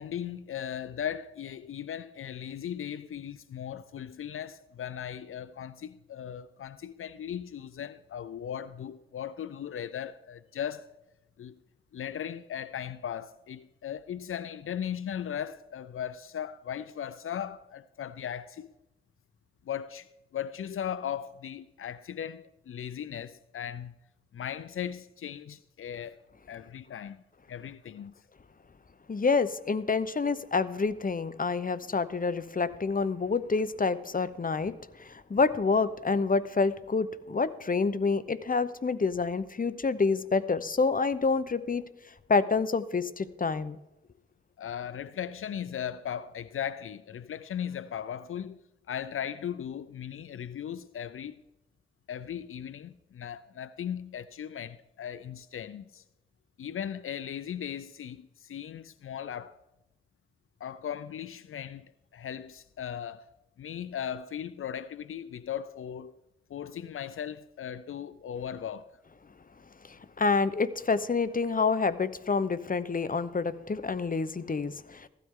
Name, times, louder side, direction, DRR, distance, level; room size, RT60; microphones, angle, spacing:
voice 1, 0.0-10.9 11.4-11.6 11.9-18.7 19.7-23.9 24.3-26.2 26.5-27.2 27.5-28.1 44.6-48.6 48.9-51.4 52.1-56.0 56.6-59.6 60.6-63.3 63.6-66.2 66.5-68.9, left 9 dB, 80° left, 0.4 m, -37 dB
voice 2, 29.1-41.8 42.3-43.8 69.9-75.1, left 4 dB, 40° left, 0.8 m, -28 dB
15.5 x 12.5 x 3.7 m
cardioid pair, 45°, 21 cm